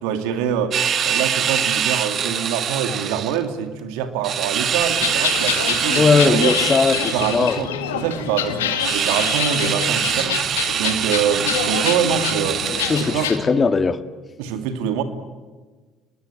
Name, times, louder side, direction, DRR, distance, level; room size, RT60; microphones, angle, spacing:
voice 1, 0.0-6.6 7.1-12.6 13.0-13.3 14.4-15.0, right 8 dB, 75° right, 2.5 m, -25 dB
sound 1, 0.7-3.4 4.2-7.6 8.8-13.4, right 8 dB, 50° right, 2.1 m, -24 dB
sound 2, 4.8-13.4, left 10 dB, 85° left, 2.0 m, -27 dB
voice 2, 6.0-7.6 12.7-14.0, left 4 dB, 35° left, 1.8 m, -19 dB
29.5 x 21.0 x 9.0 m
hypercardioid pair, 60°, 0 cm